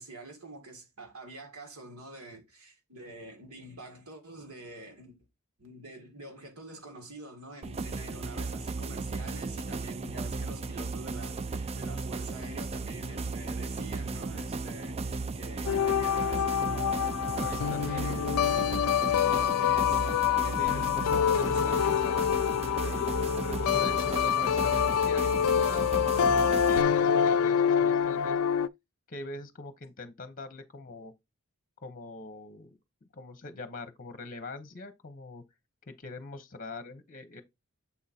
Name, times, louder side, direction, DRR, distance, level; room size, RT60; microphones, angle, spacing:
voice 1, 0.0-5.2 5.6-18.9 19.6-20.9 21.1-22.2, right 2 dB, 85° right, 2.0 m, -47 dB
sound 1, 7.6-26.8, right 3 dB, 30° right, 0.4 m, -35 dB
sound 2, 15.7-28.7, left 8 dB, 85° left, 0.4 m, -26 dB
voice 2, 17.4-18.3 20.5-21.8 22.0-22.4 22.8-28.4 29.1-31.1 31.8-32.8 33.1-35.4 35.9-37.4, left 2 dB, 40° left, 0.9 m, -43 dB
7.1 x 3.7 x 4.2 m
head